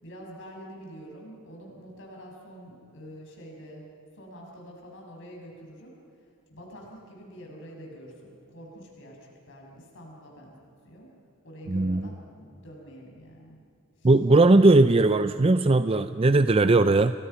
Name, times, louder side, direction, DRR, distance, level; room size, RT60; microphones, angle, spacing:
voice 1, 0.0-3.9 4.1-6.0 6.5-10.6 10.8-11.1 11.4-13.6 14.0-14.1, equal, 55° left, -1 dB, 6.8 m, -46 dB
voice 2, 11.7-12.1 14.0-17.1, right 2 dB, 25° right, 11 dB, 0.5 m, -19 dB
29.5 x 22.5 x 5.8 m, 2.6 s
head